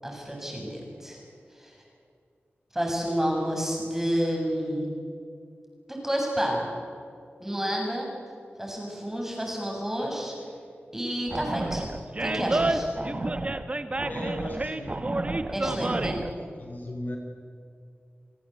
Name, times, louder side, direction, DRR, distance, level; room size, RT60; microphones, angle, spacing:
voice 1, 0.0-1.2 1.5-1.8 2.7-4.9 5.9-6.6 7.4-8.1 8.6-10.3 10.9-11.8 12.2-12.9 15.5-16.2, equal, 10° right, -1 dB, 7.4 m, -30 dB
Animal, 11.3-16.3, right 2 dB, 30° right, 1.3 m, -29 dB
voice 2, 14.0-15.0 15.9-17.2, left 1 dB, 50° left, 2 dB, 3.4 m, -38 dB
29.0 x 17.5 x 8.2 m, 2.4 s
wide cardioid pair, 95°, 4 cm